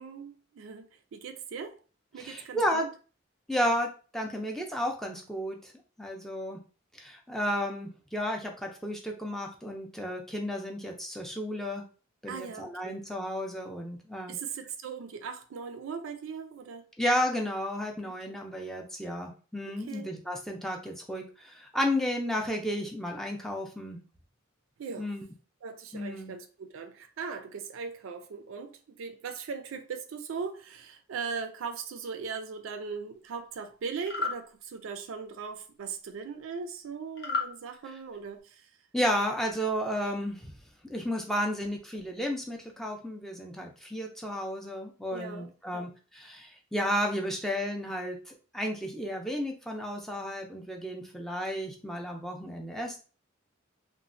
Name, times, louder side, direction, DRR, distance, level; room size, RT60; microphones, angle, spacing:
voice 1, 0.0-1.8 2.1-2.9 12.3-13.0 14.3-16.9 18.0-18.4 19.9-20.1 24.8-25.1 25.6-38.7 45.1-45.9, right 5 dB, 70° right, 0.4 m, -39 dB
voice 2, 2.2-2.8 3.5-5.7 6.0-6.6 6.9-11.8 12.2-14.4 17.0-24.0 25.0-25.2 25.9-26.3 38.9-40.5 40.8-53.0, equal, ahead, 0.4 m, -32 dB
sound 1, 34.0-34.4 37.2-37.5, left 4 dB, 55° left, 0.7 m, -31 dB
3.0 x 2.1 x 2.5 m
head